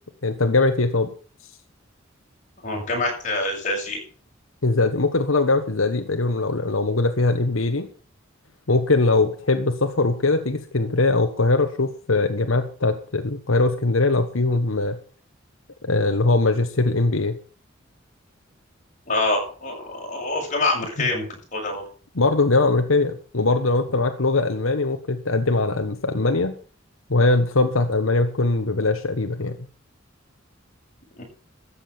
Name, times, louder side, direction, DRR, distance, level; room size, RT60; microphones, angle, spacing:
voice 1, 0.2-1.1 4.6-7.9 8.7-15.0 15.8-17.4 22.1-26.5 27.1-29.6, left 3 dB, 85° left, 7 dB, 1.3 m, -21 dB
voice 2, 2.6-4.0 19.1-21.2 21.5-21.8 31.2-31.3, left 2 dB, 40° left, -1 dB, 6.9 m, -25 dB
14.0 x 8.5 x 7.1 m, 0.40 s
head